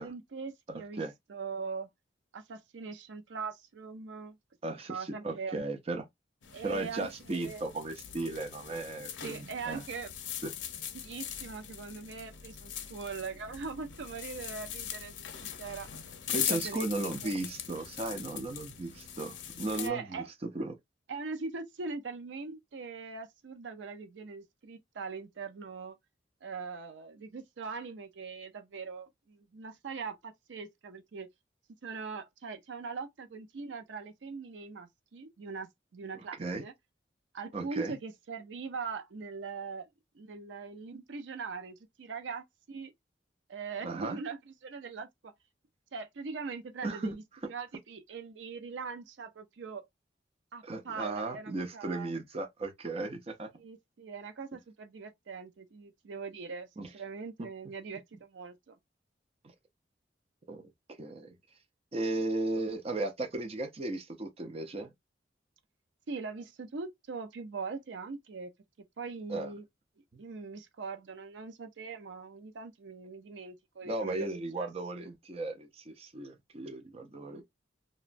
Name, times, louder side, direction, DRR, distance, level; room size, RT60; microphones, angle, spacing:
voice 1, 0.0-1.0 1.3-1.9 2.3-4.4 4.9-5.6 6.5-7.6 9.2-10.1 10.9-15.9 16.3-17.3 19.8-20.3 21.1-26.0 26.4-31.3 31.8-36.7 37.3-39.9 40.1-42.9 43.5-45.3 45.9-49.9 50.5-52.1 53.6-56.7 56.9-58.8 66.1-68.5 69.0-69.6 70.2-74.3 74.6-74.7 77.2-77.4, right 4 dB, 80° right, 0.5 m, -41 dB
voice 2, 0.7-1.1 4.6-6.1 6.6-9.8 10.4-10.5 16.3-20.8 36.1-36.6 37.5-37.9 43.8-44.2 46.8-47.2 47.4-47.5 50.6-53.5 56.8-56.9 57.4-57.5 60.5-60.7 61.0-61.3 61.9-64.9 69.3-69.5 73.8-77.4, right 2 dB, 35° right, 0.5 m, -36 dB
sound 1, 6.4-19.9, left 9 dB, 90° left, 0.6 m, -41 dB
2.9 x 2.2 x 2.4 m
head